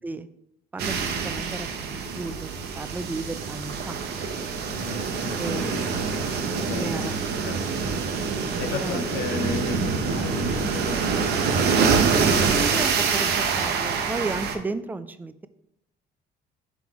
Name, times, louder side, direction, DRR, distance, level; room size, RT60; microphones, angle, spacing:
sound 1, 0.8-14.6, right 5 dB, 75° right, 0.8 m, -25 dB
voice 1, 1.2-2.5 2.8-4.0 5.4-5.8 6.7-7.6 7.9-8.1 8.4-9.0 11.7-12.0 12.3-15.5, right 3 dB, 10° right, 12 dB, 0.3 m, -34 dB
voice 2, 4.7-7.6 8.4-12.1, left 4 dB, 85° left, 6 dB, 0.7 m, -35 dB
6.0 x 3.8 x 4.6 m, 0.78 s
cardioid pair, 110°, 17 cm